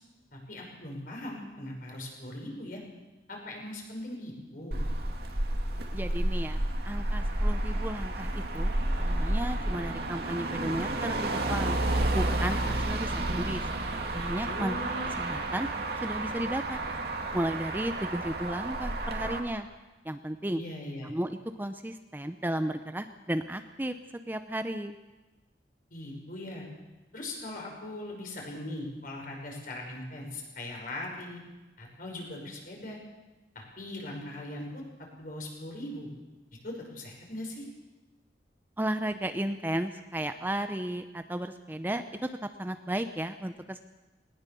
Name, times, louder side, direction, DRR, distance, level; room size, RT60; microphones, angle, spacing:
voice 1, 0.3-2.8 3.3-4.8 14.4-15.2 20.5-21.1 25.9-26.6 27.1-31.4 31.8-33.0 33.5-34.8 35.2-36.1 36.6-37.6, left 1 dB, 50° left, 0 dB, 5.7 m, -40 dB
Motor vehicle (road), 4.7-19.4, right 1 dB, 60° right, 2.3 m, -31 dB
voice 2, 5.9-8.7 9.0-11.8 12.1-13.6 14.1-14.8 15.2-15.7 16.0-16.8 17.3-19.7 20.0-20.6 21.0-23.9 24.3-24.9 38.8-42.3 42.6-43.8, right 1 dB, 10° right, 8 dB, 0.7 m, -34 dB
19.5 x 19.0 x 7.0 m, 1.1 s
head